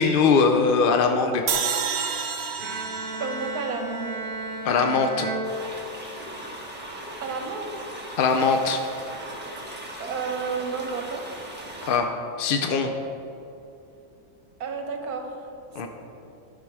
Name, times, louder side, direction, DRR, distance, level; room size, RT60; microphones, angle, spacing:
voice 1, 0.0-1.4 4.6-5.3 8.2-8.8 11.9-12.1 12.4-12.9 15.8-15.9, left 5 dB, 65° left, 5 dB, 0.5 m, -21 dB
sound 1, 1.5-4.7, right 6 dB, 55° right, 0.8 m, -30 dB
Bowed string instrument, 2.6-6.3, right 2 dB, 30° right, 2.8 m, -34 dB
voice 2, 3.2-4.2 7.2-7.7 10.0-11.2 14.6-15.3, right 5 dB, 80° right, 4 dB, 1.5 m, -31 dB
sound 2, 5.4-12.0, right 1 dB, 5° right, 1.3 m, -38 dB
12.5 x 6.1 x 4.7 m, 2.8 s
omnidirectional pair, 1.6 m